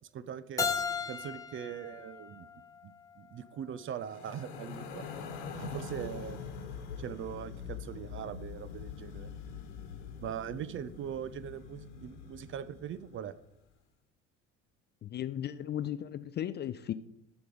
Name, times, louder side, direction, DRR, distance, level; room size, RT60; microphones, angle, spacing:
voice 1, 0.1-0.7 1.1-2.5 2.8-5.1 5.5-6.4 7.0-9.3 10.1-13.3, right 9 dB, 35° right, 15 dB, 0.6 m, -41 dB
Keyboard (musical), 0.6-3.4, left 5 dB, 10° left, 0.9 m, -36 dB
sound 1, 4.0-13.3, left 6 dB, 65° left, 1.3 m, -44 dB
voice 2, 15.0-16.9, left 11 dB, 30° left, 13 dB, 0.4 m, -36 dB
7.8 x 6.0 x 4.9 m, 0.79 s
figure-of-eight pair, 65°, 37 cm